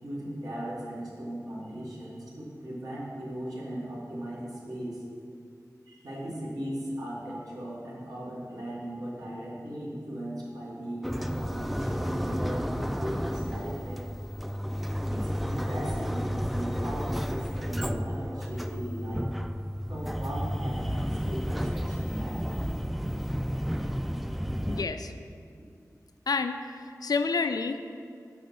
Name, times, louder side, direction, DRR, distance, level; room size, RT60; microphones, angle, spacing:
voice 1, 0.0-5.0 5.9-14.1 15.1-19.3 19.9-22.6, right 1 dB, 70° right, -6 dB, 2.3 m, -37 dB
sound 1, 11.0-24.8, equal, ahead, 0.3 m, -32 dB
voice 2, 24.7-25.1 26.3-28.1, left 4 dB, 80° left, 8 dB, 0.4 m, -30 dB
7.7 x 6.1 x 5.5 m, 2.3 s
wide cardioid pair, 85°, 7 cm